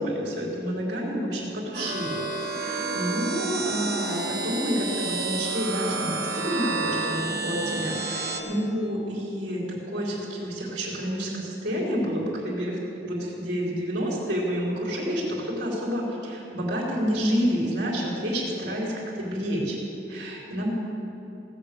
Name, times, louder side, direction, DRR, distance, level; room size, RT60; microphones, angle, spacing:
voice 1, 0.0-2.2 2.6-19.8 20.1-20.7, equal, 75° right, -4 dB, 3.9 m, -29 dB
sound 1, 1.7-8.4, right 3 dB, 55° right, 1.4 m, -30 dB
17.5 x 6.8 x 8.4 m, 2.9 s
head